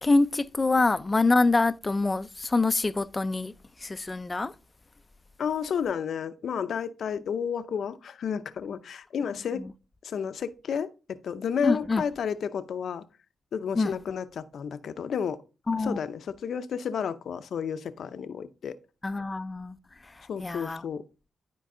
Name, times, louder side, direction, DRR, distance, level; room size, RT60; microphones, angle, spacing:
voice 1, 0.0-3.5 3.8-4.5 11.6-12.0 13.7-13.9 15.7-16.0 19.0-19.8 20.4-20.8, left 3 dB, 25° left, 0.5 m, -25 dB
voice 2, 5.4-9.6 10.0-13.0 13.5-15.4 15.8-18.8 20.3-21.0, left 7 dB, 70° left, 0.7 m, -31 dB
11.5 x 4.6 x 3.8 m
cardioid pair, 80°, 0 cm